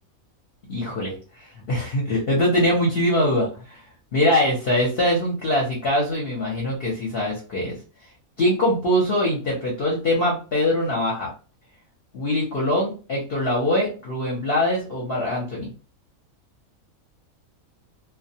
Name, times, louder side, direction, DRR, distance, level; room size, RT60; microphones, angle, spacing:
voice 1, 0.7-1.1 1.4-3.8 4.1-7.8 8.4-11.3 12.1-15.7, left 1 dB, 50° left, -2 dB, 0.8 m, -23 dB
2.2 x 2.2 x 2.7 m, 0.35 s
omnidirectional pair, 1.5 m